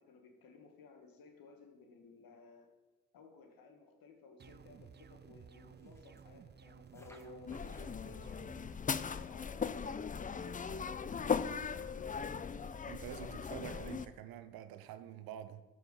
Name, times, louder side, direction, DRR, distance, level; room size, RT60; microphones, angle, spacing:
voice 1, 0.0-2.7 3.1-8.4 9.0-12.8, left 3 dB, 70° left, 1.5 m, -57 dB
sound 1, 4.4-8.8, right 7 dB, 30° right, 0.5 m, -56 dB
sound 2, 5.8-6.3 6.8-8.3 9.0-10.9, equal, 5° left, 1.7 m, -66 dB
sound 3, 7.5-14.1, left 6 dB, 25° left, 0.5 m, -38 dB
voice 2, 12.8-15.6, right 11 dB, 75° right, 0.8 m, -47 dB
13.0 x 4.8 x 4.8 m
hypercardioid pair, 40°, 36 cm